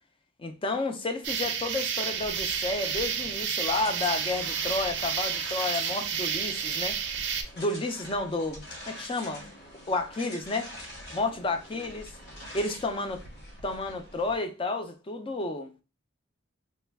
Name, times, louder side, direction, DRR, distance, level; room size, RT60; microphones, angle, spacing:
voice 1, 0.4-7.0 7.6-9.5 9.9-10.7 11.1-12.1 12.5-13.2 13.6-15.7, left 2 dB, 25° left, 0.4 m, -31 dB
sound 1, 1.2-7.4, right 7 dB, 60° right, 0.5 m, -31 dB
sound 2, 2.1-14.4, equal, 55° left, 1.1 m, -45 dB
3.1 x 2.2 x 3.4 m
head